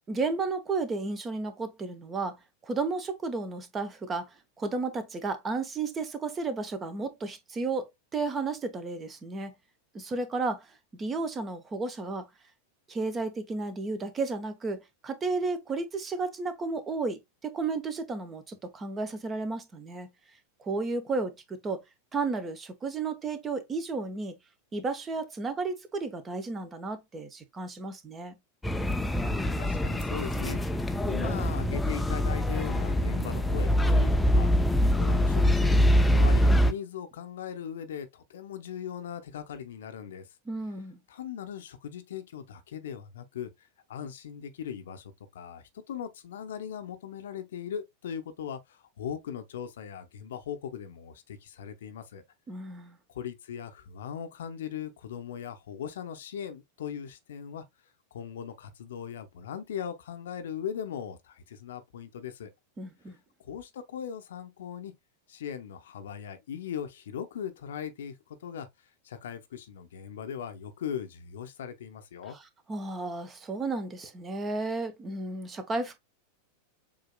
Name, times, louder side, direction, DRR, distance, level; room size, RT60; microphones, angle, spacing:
voice 1, 0.1-4.3 4.6-9.5 9.9-12.3 12.9-20.1 20.6-21.8 22.1-24.4 24.7-28.4 40.5-41.0 52.5-53.0 62.8-63.2 72.3-72.4 72.7-76.0, right 3 dB, 20° right, 0.9 m, -33 dB
sound 1, 28.6-36.7, equal, 5° left, 0.5 m, -24 dB
voice 2, 29.1-30.6 31.1-34.5 35.0-40.3 41.1-52.2 53.1-57.6 58.1-62.5 63.4-64.9 65.3-68.7 69.0-72.4, left 8 dB, 60° left, 0.8 m, -39 dB
7.2 x 2.8 x 2.2 m
figure-of-eight pair, 90°, 0 cm